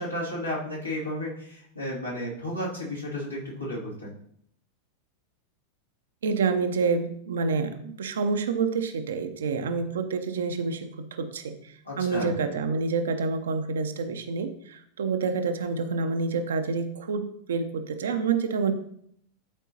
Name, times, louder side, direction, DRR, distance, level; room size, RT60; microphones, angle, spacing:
voice 1, 0.0-4.1 11.8-12.3, left 1 dB, 85° left, -6 dB, 2.6 m, -33 dB
voice 2, 6.2-18.7, right 4 dB, 65° right, 8 dB, 0.7 m, -28 dB
11.5 x 4.5 x 2.9 m, 0.68 s
figure-of-eight pair, 90°, 0 cm